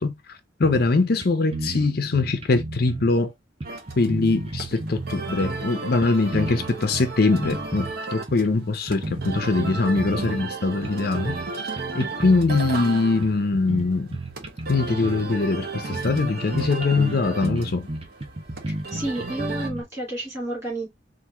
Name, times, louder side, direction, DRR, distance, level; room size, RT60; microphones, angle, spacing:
voice 1, 0.0-3.3 4.0-11.7 11.9-14.2 14.7-17.9, left 3 dB, 55° left, 0.6 m, -22 dB
sound 1, 0.6-1.3 1.5-3.2 3.6-5.7 6.0-7.9 8.3-8.5 8.9-10.5 10.8-11.5 11.8-12.8 13.2-15.3 15.6-15.7 15.9-16.2 16.5-19.8, right 2 dB, 30° right, 1.0 m, -33 dB
sound 2, 3.6-19.7, right 3 dB, 55° right, 1.0 m, -35 dB
voice 2, 18.7-20.9, right 1 dB, 15° right, 2.8 m, -31 dB
4.3 x 2.6 x 3.4 m
head